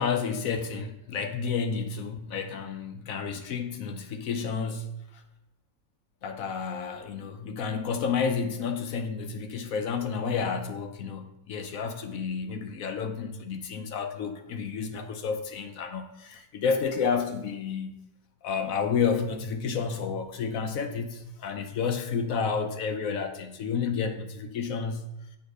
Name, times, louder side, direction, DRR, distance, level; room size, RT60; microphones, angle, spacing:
voice 1, 0.0-5.2 6.2-18.0 18.4-25.1, left 6 dB, 65° left, 1.0 m, -30 dB
8.1 x 3.9 x 6.4 m
omnidirectional pair, 1.7 m